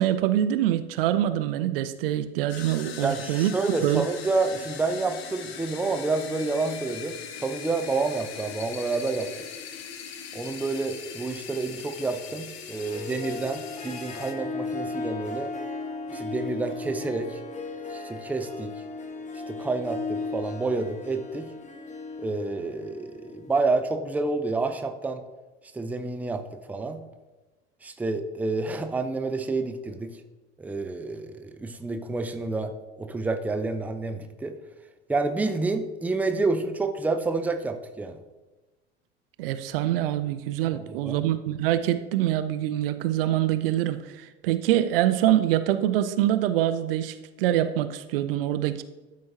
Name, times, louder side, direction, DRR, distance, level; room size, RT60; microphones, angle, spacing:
voice 1, 0.0-4.0 39.4-48.8, right 12 dB, 60° right, 11 dB, 0.5 m, -25 dB
sound 1, 2.5-14.3, left 7 dB, 65° left, 0.8 m, -40 dB
voice 2, 3.0-9.4 10.3-15.5 16.1-17.4 17.9-18.7 19.5-21.5 22.2-25.2 25.7-27.0 27.8-30.2 30.6-34.6 35.1-38.2 40.7-41.2, right 3 dB, 5° right, 7 dB, 0.5 m, -29 dB
Harp, 12.7-23.9, left 3 dB, 20° left, 1.1 m, -36 dB
12.0 x 4.6 x 2.7 m, 1.2 s
figure-of-eight pair, 65°, 33 cm